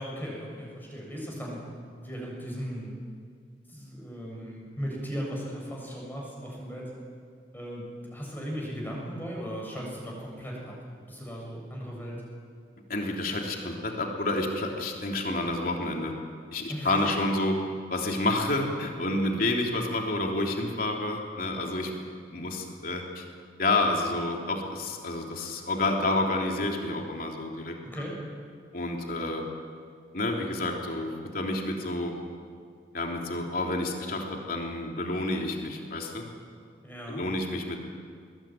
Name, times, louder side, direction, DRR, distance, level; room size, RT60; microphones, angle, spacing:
voice 1, 0.0-1.6 2.0-2.9 3.7-6.9 7.5-10.8 11.1-12.2 16.7-17.1 27.8-28.2 36.8-37.3, equal, 10° left, -2 dB, 7.0 m, -37 dB
voice 2, 12.9-16.1 16.5-17.6 17.9-21.9 22.2-23.2 23.6-28.0 28.7-29.5 30.1-32.2 32.9-36.2 37.1-37.8, left 2 dB, 50° left, 1 dB, 3.3 m, -29 dB
21.5 x 21.0 x 9.2 m, 2.1 s
head